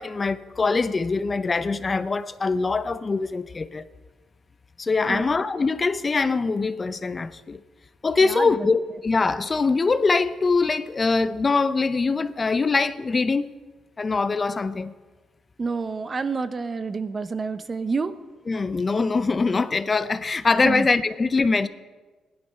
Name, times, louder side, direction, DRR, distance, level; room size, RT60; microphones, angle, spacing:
voice 1, 0.0-3.8 4.8-7.6 8.0-13.5 14.0-14.9 18.5-21.7, left 4 dB, 30° left, 0.6 m, -23 dB
voice 2, 8.2-8.7 15.6-18.1 20.6-20.9, right 4 dB, 35° right, 0.8 m, -28 dB
16.0 x 11.5 x 5.6 m
cardioid pair, 90°, 0 cm